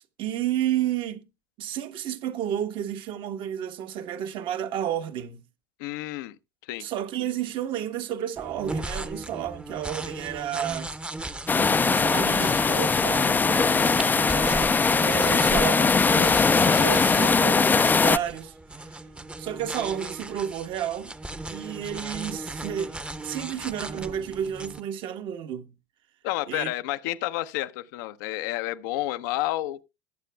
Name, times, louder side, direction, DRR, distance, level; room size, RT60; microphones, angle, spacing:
voice 1, 0.2-1.2 1.6-5.4 6.8-10.9 11.5-18.5 19.4-21.2 21.5-23.0 23.2-25.7 26.5-26.7, right 10 dB, 50° right, 1.2 m, -31 dB
voice 2, 5.8-6.4 6.6-6.9 26.2-29.8, left 16 dB, 65° left, 0.7 m, -30 dB
sound 1, 8.4-24.8, right 2 dB, 10° right, 0.9 m, -37 dB
sound 2, 11.5-18.2, left 4 dB, 15° left, 0.5 m, -21 dB
21.0 x 7.5 x 2.2 m
hypercardioid pair, 75°, 11 cm